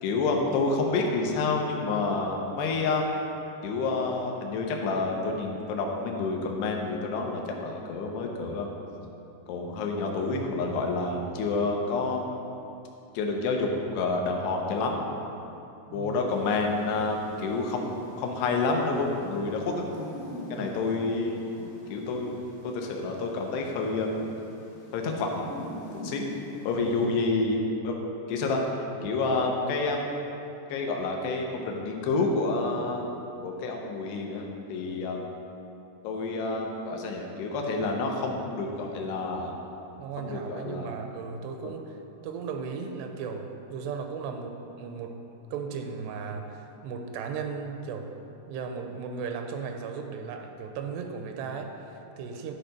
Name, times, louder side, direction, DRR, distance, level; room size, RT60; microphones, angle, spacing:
voice 1, 0.0-3.1 3.6-8.7 9.5-12.3 13.1-15.0 15.9-19.9 20.5-21.4 21.9-22.3 22.6-24.1 24.9-25.5 25.9-26.3 26.6-28.0 28.3-28.6 29.0-30.1 30.7-33.1 33.4-35.2 36.0-39.5 40.2-40.9 41.6-41.8, left 3 dB, 85° left, 1 dB, 2.9 m, -28 dB
sound 1, 16.3-27.1, left 1 dB, 65° left, 3.4 m, -45 dB
voice 2, 26.7-27.1 40.0-41.9 42.2-45.2 45.5-48.1 48.5-52.5, right 5 dB, 85° right, 5 dB, 2.6 m, -36 dB
11.5 x 4.5 x 5.2 m, 2.8 s
omnidirectional pair, 4.8 m